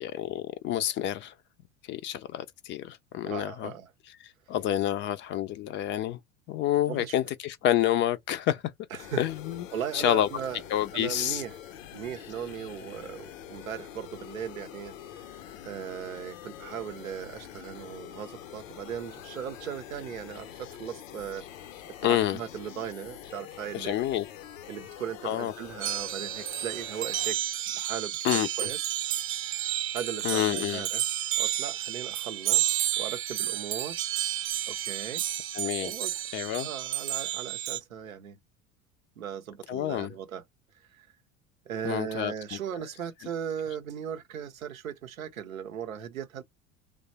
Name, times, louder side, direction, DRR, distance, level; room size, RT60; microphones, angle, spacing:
voice 1, 0.0-1.3 1.9-3.7 4.5-6.2 6.5-8.6 9.2-9.7 9.9-10.3 10.7-11.4 22.0-22.4 23.7-24.3 25.2-25.5 28.2-28.5 30.2-30.9 35.5-35.9 36.3-36.7 39.7-40.1 41.8-42.6, left 12 dB, 30° left, 0.4 m, -28 dB
voice 2, 3.2-3.9 6.9-7.1 8.9-9.2 9.7-10.6 10.9-11.6 11.9-21.5 21.9-24.0 24.7-27.4 27.7-28.8 29.9-31.0 31.4-34.0 34.7-35.2 35.8-36.2 36.6-38.4 39.2-40.4 40.9-41.1 41.7-46.4, right 8 dB, 80° right, 0.7 m, -38 dB
sound 1, 9.0-27.3, left 10 dB, 70° left, 0.6 m, -45 dB
sound 2, 25.8-37.8, right 13 dB, 35° right, 0.4 m, -31 dB
3.2 x 2.0 x 4.1 m
figure-of-eight pair, 75°, 40 cm